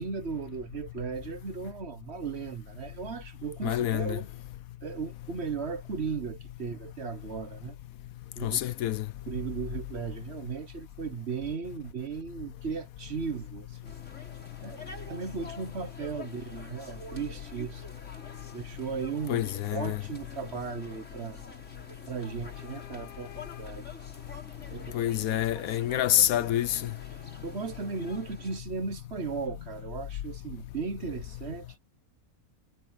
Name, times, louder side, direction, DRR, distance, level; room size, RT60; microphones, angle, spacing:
voice 1, 0.0-4.3 4.8-7.8 8.4-8.6 9.3-13.9 14.6-17.8 18.5-21.4 22.1-23.9 24.6-26.5 27.4-31.8, right 5 dB, 50° right, 1.2 m, -37 dB
voice 2, 3.6-4.2 8.4-9.0 19.3-20.0 24.9-26.8, left 12 dB, 70° left, 1.0 m, -27 dB
sound 1, 13.8-28.6, left 2 dB, 50° left, 5.9 m, -48 dB
omnidirectional pair, 1.6 m